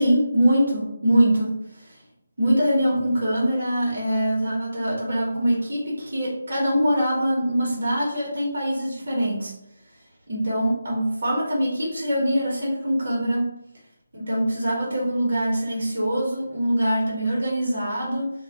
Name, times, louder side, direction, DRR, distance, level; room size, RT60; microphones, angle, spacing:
voice 1, 0.0-2.0 2.4-9.5 10.3-13.5 14.1-18.3, equal, 55° right, -4 dB, 0.8 m, -23 dB
2.2 x 2.1 x 2.7 m, 0.81 s
figure-of-eight pair, 150°, 0 cm